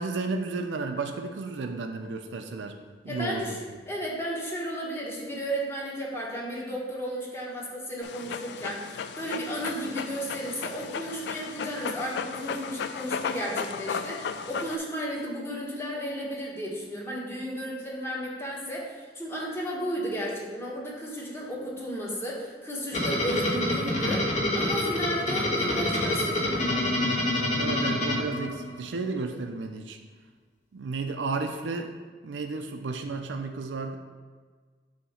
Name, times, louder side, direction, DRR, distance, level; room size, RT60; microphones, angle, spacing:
voice 1, 0.0-2.8 3.0-3.6 27.6-30.0 30.7-31.9 32.2-34.0, right 3 dB, 90° right, 5 dB, 0.5 m, -33 dB
voice 2, 3.1-3.6 3.9-26.8, equal, 15° left, -4 dB, 1.2 m, -34 dB
Dog, 8.0-14.8, left 6 dB, 65° left, 0.3 m, -35 dB
sound 1, 22.9-28.9, left 1 dB, 45° left, 1.2 m, -27 dB
6.9 x 2.8 x 5.6 m, 1.5 s
head